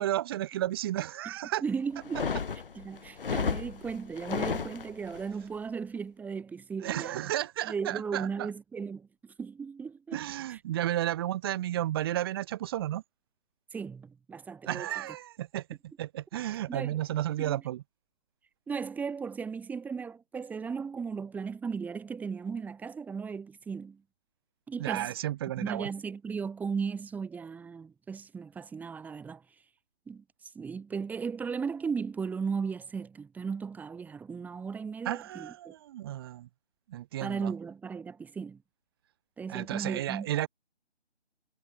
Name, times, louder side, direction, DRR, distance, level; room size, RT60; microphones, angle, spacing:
voice 1, 0.0-1.6 6.8-8.5 10.1-13.0 14.6-17.8 24.8-25.9 35.0-36.5 36.9-37.5 39.5-40.5, right 13 dB, 20° right, 2.7 m, -33 dB
voice 2, 1.6-2.3 2.8-7.3 7.6-10.2 10.5-10.6 13.7-14.9 16.7-17.0 17.4-17.6 18.7-24.0 24.7-25.1 25.6-29.4 30.1-35.7 37.2-38.6 39.4-40.3, right 5 dB, 5° right, 7.2 m, -36 dB
sound 1, 2.0-5.2, left 5 dB, 50° left, 5.5 m, -33 dB
figure-of-eight pair, 160°, 34 cm